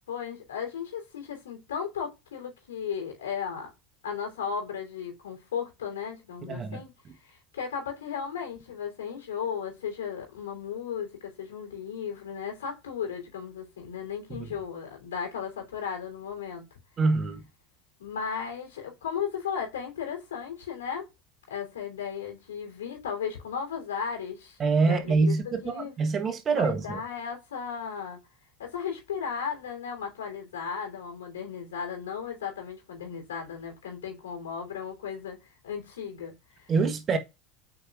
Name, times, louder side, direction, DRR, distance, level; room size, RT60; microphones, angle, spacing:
voice 1, 0.1-3.7 4.0-6.9 7.2-16.6 18.0-21.0 21.5-24.6 24.9-25.3 25.6-25.9 26.6-28.2 28.6-35.4 35.6-36.7, left 7 dB, 80° left, 3.2 m, -35 dB
voice 2, 6.4-6.8 14.4-14.5 17.0-17.4 24.6-27.0 36.7-37.2, right 4 dB, 35° right, 1.1 m, -25 dB
8.1 x 5.0 x 2.4 m
hypercardioid pair, 80°, 0 cm